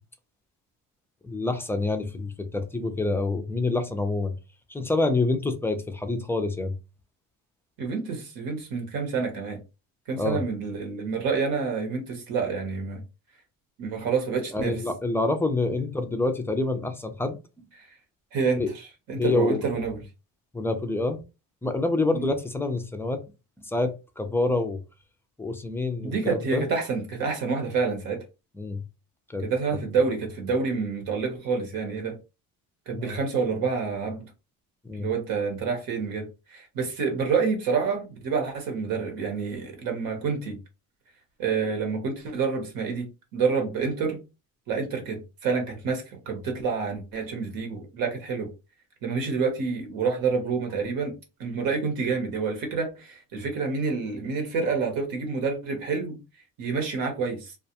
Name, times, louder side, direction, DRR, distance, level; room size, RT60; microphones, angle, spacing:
voice 1, 1.2-4.3 4.7-6.7 10.2-10.4 14.5-17.6 18.6-18.7 19.2-19.6 20.5-21.2 21.6-23.2 23.6-24.8 25.4-26.6 28.6-28.8 29.3-29.4 32.9-33.2 34.8-35.1, left 2 dB, 5° left, 0.3 m, -27 dB
voice 2, 7.8-9.6 10.1-13.0 13.8-14.8 18.3-20.0 22.1-22.2 26.0-28.2 29.4-32.2 32.9-34.3 35.0-40.6 41.4-43.1 43.3-44.2 44.7-48.5 49.0-51.1 51.4-56.2 56.6-57.6, right 5 dB, 80° right, 1.1 m, -28 dB
2.4 x 2.2 x 2.7 m
cardioid pair, 115°, 35 cm